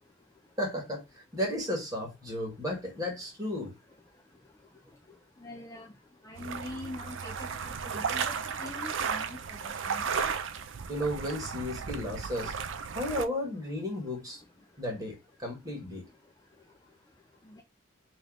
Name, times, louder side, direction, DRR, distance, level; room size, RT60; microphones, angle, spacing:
voice 1, 0.6-1.0 1.3-3.7 10.9-12.5 12.9-14.4 14.8-16.0, left 1 dB, 20° right, 1.8 m, -34 dB
voice 2, 5.4-5.9 6.2-10.0 17.5-17.6, left 2 dB, 15° left, 0.6 m, -43 dB
sound 1, 6.4-13.3, right 6 dB, 80° right, 0.5 m, -34 dB
3.1 x 3.1 x 3.8 m
head